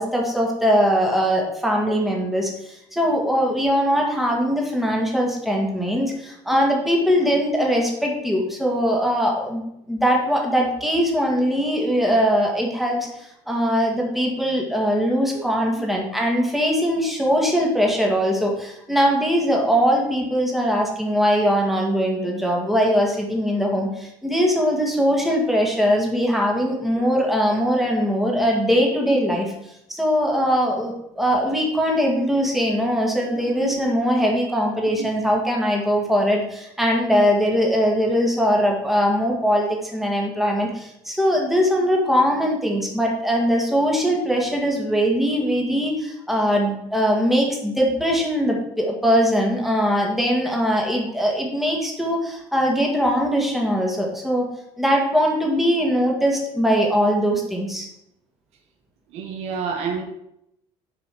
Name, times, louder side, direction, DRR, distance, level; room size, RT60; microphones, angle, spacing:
voice 1, 0.0-29.5 29.9-54.5 54.8-57.9, equal, ahead, -1 dB, 1.9 m, -21 dB
voice 2, 33.3-33.9 35.0-35.1 59.1-60.0, right 6 dB, 65° right, 5 dB, 1.2 m, -29 dB
7.0 x 5.2 x 6.2 m, 0.79 s
cardioid pair, 140°, 11 cm